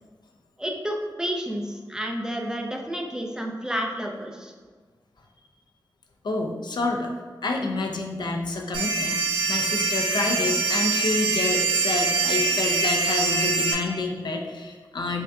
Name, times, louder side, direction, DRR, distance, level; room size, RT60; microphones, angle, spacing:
voice 1, 0.6-4.5, equal, 10° right, 0 dB, 0.4 m, -30 dB
voice 2, 6.2-7.1 7.4-9.2 9.5-15.2, left 3 dB, 70° left, 2 dB, 0.5 m, -28 dB
sound 1, 8.7-13.7, right 4 dB, 80° right, 0.6 m, -24 dB
5.2 x 2.5 x 2.3 m, 1.5 s
wide cardioid pair, 100°, 8 cm